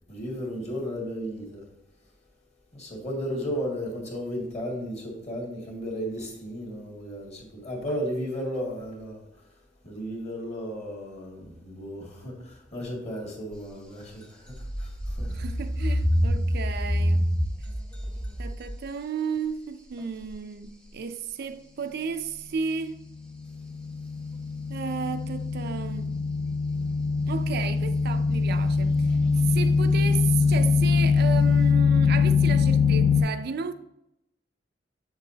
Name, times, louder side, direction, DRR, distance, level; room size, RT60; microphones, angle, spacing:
voice 1, 0.1-1.6 2.7-9.2 9.8-15.4, equal, 35° left, 2.0 m, -34 dB
sound 1, 13.5-13.6 14.2-18.9 20.0-20.4 22.6-22.7 29.8-29.9 30.4-30.5 30.9-31.0, equal, 5° left, 0.9 m, -27 dB
voice 2, 15.3-17.4 18.4-23.0 24.7-26.3 27.2-29.1 29.4-33.7, right 6 dB, 55° right, 0.4 m, -33 dB
sound 2, 23.6-33.2, left 5 dB, 55° left, 0.8 m, -23 dB
8.0 x 6.9 x 2.8 m
head